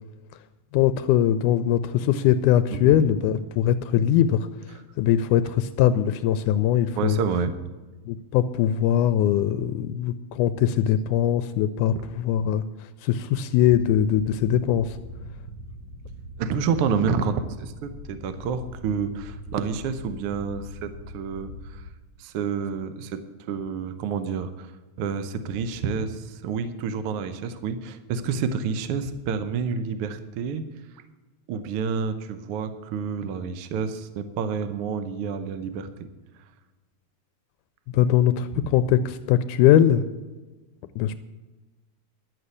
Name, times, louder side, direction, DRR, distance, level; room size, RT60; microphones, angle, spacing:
voice 1, 0.7-4.5 5.0-7.2 8.1-12.6 13.0-15.0 37.9-40.0 41.0-41.2, left 10 dB, 80° left, 11 dB, 1.9 m, -21 dB
voice 2, 6.9-7.5 16.4-21.9 22.2-24.7 25.0-30.6 31.5-36.1, right 6 dB, 85° right, 11 dB, 1.2 m, -29 dB
sound 1, 13.6-21.9, equal, 55° right, 5.0 m, -41 dB
11.5 x 7.6 x 8.3 m, 1.2 s
omnidirectional pair, 3.8 m